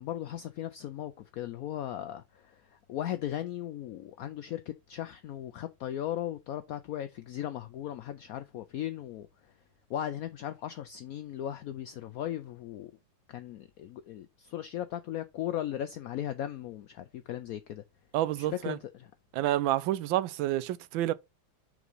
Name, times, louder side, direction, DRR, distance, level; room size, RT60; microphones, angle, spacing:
voice 1, 0.0-9.3 9.9-12.9 13.3-17.8 18.4-19.1, left 11 dB, 80° left, 0.8 m, -37 dB
voice 2, 18.1-18.8 19.3-21.1, right 14 dB, 85° right, 1.4 m, -29 dB
6.0 x 3.7 x 5.5 m
omnidirectional pair, 2.1 m